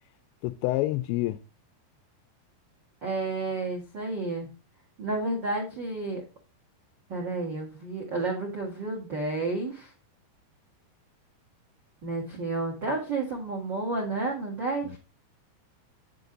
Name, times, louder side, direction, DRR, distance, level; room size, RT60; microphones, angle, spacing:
voice 1, 0.4-1.4 14.8-15.0, left 17 dB, 85° left, 2.6 m, -28 dB
voice 2, 3.0-4.5 5.0-6.2 7.1-9.9 12.0-15.0, right 3 dB, 70° right, 1.0 m, -31 dB
8.5 x 6.9 x 3.9 m
omnidirectional pair, 5.5 m